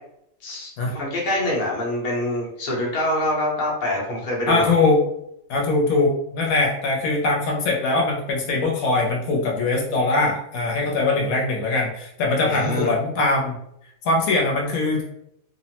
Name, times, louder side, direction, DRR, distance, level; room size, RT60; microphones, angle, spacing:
voice 1, 0.4-4.7 12.4-12.9, left 1 dB, 45° left, -3 dB, 0.8 m, -25 dB
voice 2, 4.5-5.0 5.5-13.6 14.0-15.0, left 3 dB, 80° left, -2 dB, 1.0 m, -21 dB
2.8 x 2.0 x 2.8 m, 0.77 s
omnidirectional pair, 1.4 m